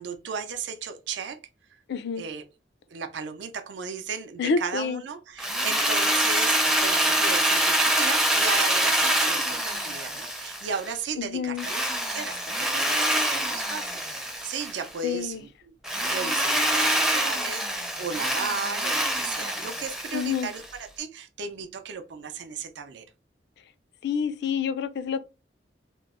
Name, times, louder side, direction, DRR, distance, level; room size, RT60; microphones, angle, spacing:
voice 1, 0.0-1.4 2.2-2.4 2.9-23.0, right 6 dB, 70° right, 0.5 m, -35 dB
voice 2, 1.9-2.2 4.4-5.0 11.2-11.7 15.0-15.4 20.1-20.5 24.0-25.2, left 6 dB, 65° left, 0.4 m, -28 dB
Drill, 5.4-10.9 11.6-14.9 15.8-20.6, right 1 dB, 5° right, 0.4 m, -25 dB
2.9 x 2.0 x 3.5 m
head